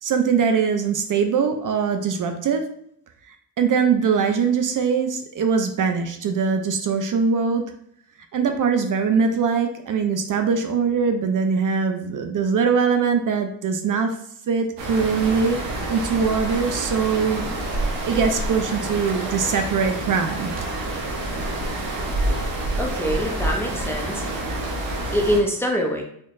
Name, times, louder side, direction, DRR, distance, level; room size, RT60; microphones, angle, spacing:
voice 1, 0.0-2.6 3.3-7.7 8.3-14.1 14.5-15.6 15.9-17.5 18.0-20.7, right 5 dB, 50° right, 6 dB, 0.5 m, -22 dB
sound 1, 14.8-25.4, right 1 dB, 90° right, 1.1 m, -28 dB
voice 2, 22.8-24.2 25.1-26.0, equal, 5° left, 0 dB, 0.5 m, -24 dB
4.3 x 2.9 x 2.5 m, 0.69 s
cardioid pair, 100°, 42 cm